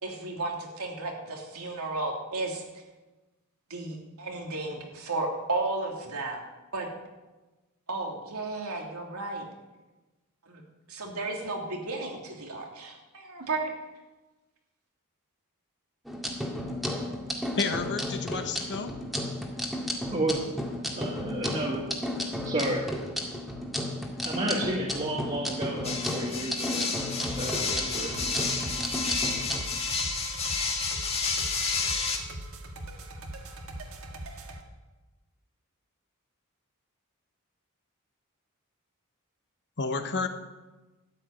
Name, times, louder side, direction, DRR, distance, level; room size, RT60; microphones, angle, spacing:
voice 1, 0.0-2.8 3.7-6.4 6.7-6.9 7.9-9.4 10.4-10.6 10.9-13.7, right 2 dB, 80° right, 0 dB, 3.0 m, -33 dB
sound 1, 16.1-29.6, left 1 dB, ahead, 2.0 m, -33 dB
voice 2, 17.6-19.0 39.8-40.3, left 4 dB, 55° left, 7 dB, 1.1 m, -30 dB
voice 3, 20.1-20.5 21.0-21.8 22.4-22.8 24.2-26.9 27.4-28.1, right 1 dB, 30° right, -4 dB, 1.9 m, -31 dB
sound 2, 25.8-32.2, left 4 dB, 30° left, 1.8 m, -30 dB
sound 3, 27.2-34.6, right 1 dB, 65° right, 1.7 m, -41 dB
13.0 x 7.9 x 9.3 m, 1.1 s
head